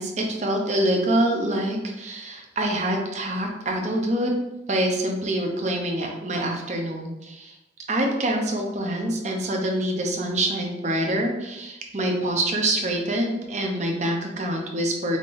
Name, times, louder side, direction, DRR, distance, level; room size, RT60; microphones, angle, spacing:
voice 1, 0.0-4.4 4.7-7.6 7.9-15.2, right 1 dB, 35° right, 1 dB, 0.7 m, -25 dB
5.1 x 3.7 x 2.5 m, 0.94 s
head